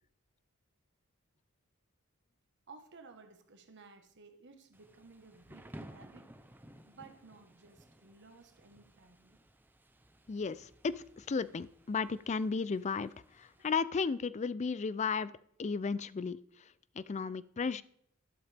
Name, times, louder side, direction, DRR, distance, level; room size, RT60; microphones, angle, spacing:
voice 1, 2.7-6.3 6.9-9.4 13.6-13.7, right 4 dB, 55° right, 6 dB, 1.3 m, -56 dB
Thunder / Rain, 4.7-13.7, right 1 dB, 10° right, 0.6 m, -56 dB
voice 2, 10.3-15.3 15.6-16.7 17.0-17.8, left 5 dB, 30° left, 18 dB, 0.4 m, -34 dB
12.0 x 11.5 x 3.4 m, 0.67 s
head